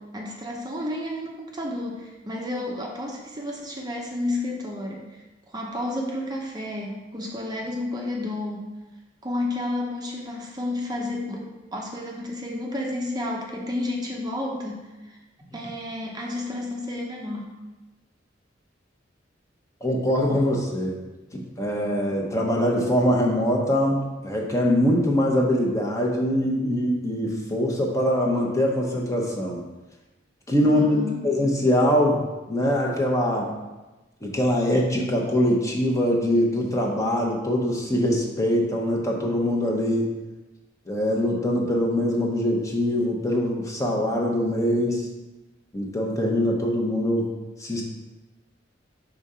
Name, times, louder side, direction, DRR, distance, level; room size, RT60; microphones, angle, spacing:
voice 1, 0.0-8.7 9.2-14.8 15.1-15.2 15.5-17.6 30.6-31.3, left 1 dB, 20° right, -1 dB, 0.7 m, -31 dB
voice 2, 19.8-21.0 21.3-29.6 30.5-33.5 34.2-40.1 40.9-45.1 45.7-47.3 47.6-47.8, equal, 15° left, -1 dB, 0.9 m, -23 dB
5.1 x 3.7 x 5.5 m, 1.1 s
head